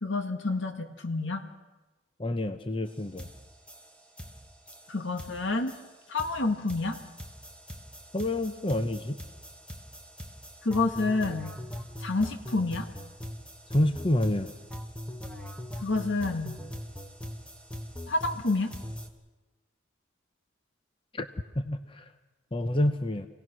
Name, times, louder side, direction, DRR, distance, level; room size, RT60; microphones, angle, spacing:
voice 1, 0.0-1.4 4.9-5.7 6.1-7.0 10.6-11.5 12.0-12.9 15.8-16.6 18.1-18.7, left 3 dB, 75° left, 6 dB, 1.9 m, -28 dB
voice 2, 2.2-3.3 8.1-9.2 13.7-14.5 21.1-21.3 21.6-22.0 22.5-23.3, left 1 dB, 25° left, 9 dB, 0.8 m, -28 dB
sound 1, 2.9-3.0 3.2-19.1, equal, 5° left, 1.3 m, -42 dB
27.0 x 17.5 x 6.2 m, 1.2 s
head